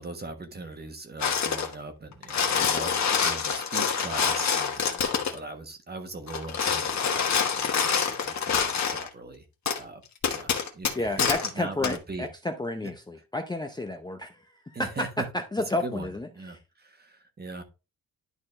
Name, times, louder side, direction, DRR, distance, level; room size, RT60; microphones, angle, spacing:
voice 1, 0.0-9.4 9.8-10.0 10.3-12.2 12.8-12.9 14.7-15.2 15.8-17.6, right 3 dB, 30° right, 1.4 m, -40 dB
sound 1, 1.2-1.7 2.1-5.4 6.3-9.1 9.7-9.8 10.2-11.5 11.8-12.0, left 6 dB, 55° left, 1.3 m, -26 dB
voice 2, 11.0-15.1 15.5-16.3, left 2 dB, 10° left, 0.6 m, -31 dB
11.0 x 4.2 x 3.2 m
wide cardioid pair, 150°, 34 cm